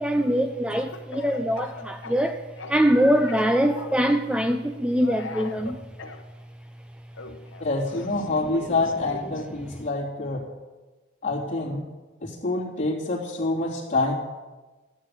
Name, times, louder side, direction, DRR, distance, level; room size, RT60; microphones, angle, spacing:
voice 1, 0.0-5.8 9.6-9.7, equal, 5° right, 7 dB, 0.4 m, -23 dB
Speech / Cough, 0.7-3.0 3.3-4.1 5.0-6.2 7.1-9.5, left 2 dB, 70° left, 1.0 m, -40 dB
voice 2, 7.6-10.4 11.2-11.8 12.2-14.1, left 2 dB, 40° left, -4 dB, 3.4 m, -26 dB
14.0 x 8.7 x 6.8 m, 1.2 s
head